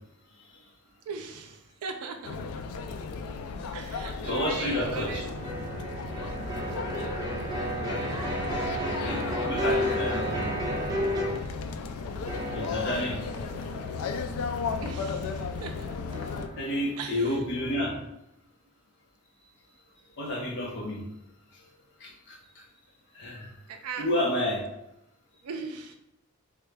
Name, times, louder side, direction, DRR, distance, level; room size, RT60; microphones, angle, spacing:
voice 1, 1.1-2.4 3.7-5.6 7.8-8.9 14.8-15.9 17.0-17.4 23.7-24.1 25.4-26.0, right 4 dB, 90° right, 4 dB, 0.4 m, -39 dB
sound 1, 2.2-16.5, left 5 dB, 80° left, 0.3 m, -35 dB
voice 2, 4.2-5.2 6.4-6.5 8.9-10.5 12.5-13.2 16.6-17.9 20.2-21.0 22.0-22.6 23.1-23.5 24.0-24.6, left 1 dB, 55° left, -2 dB, 0.8 m, -30 dB
sound 2, 4.4-11.7 12.3-18.0, equal, 20° right, 0.7 m, -34 dB
3.5 x 2.2 x 3.2 m, 0.85 s
head